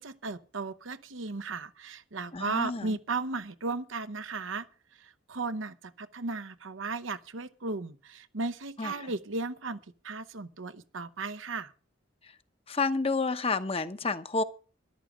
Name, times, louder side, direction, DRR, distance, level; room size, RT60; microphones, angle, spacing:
voice 1, 0.0-4.7 5.0-11.7, right 3 dB, 85° right, 1.0 m, -35 dB
voice 2, 2.3-3.0 8.8-9.1 12.7-14.4, left 3 dB, 30° left, 0.9 m, -30 dB
13.5 x 11.5 x 5.0 m
head